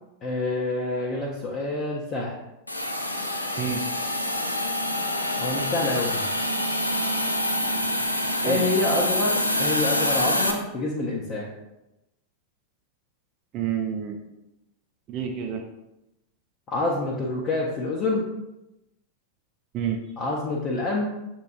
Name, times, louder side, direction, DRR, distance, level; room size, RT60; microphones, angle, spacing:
voice 1, 0.2-2.4 5.4-6.3 8.4-11.5 16.7-18.3 20.2-21.0, left 2 dB, 30° left, -3 dB, 0.7 m, -27 dB
Hiss, 2.7-10.5, left 1 dB, 85° left, 0.4 m, -26 dB
voice 2, 8.4-8.8 13.5-14.2 15.1-15.6 19.7-20.0, right 8 dB, 35° right, 2 dB, 0.5 m, -29 dB
6.7 x 3.0 x 2.4 m, 0.93 s
figure-of-eight pair, 90°, 0 cm